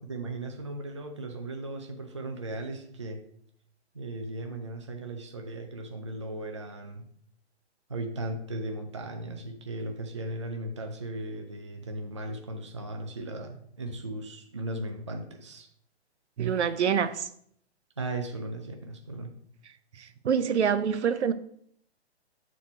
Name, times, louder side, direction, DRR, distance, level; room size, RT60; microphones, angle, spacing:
voice 1, 0.0-3.2 3.9-7.1 7.9-15.7 18.0-19.4, right 2 dB, 30° right, 4 dB, 0.4 m, -37 dB
voice 2, 16.4-17.3 20.0-21.3, right 7 dB, 85° right, 11 dB, 0.7 m, -26 dB
7.2 x 4.2 x 4.3 m, 0.66 s
hypercardioid pair, 175°, 33 cm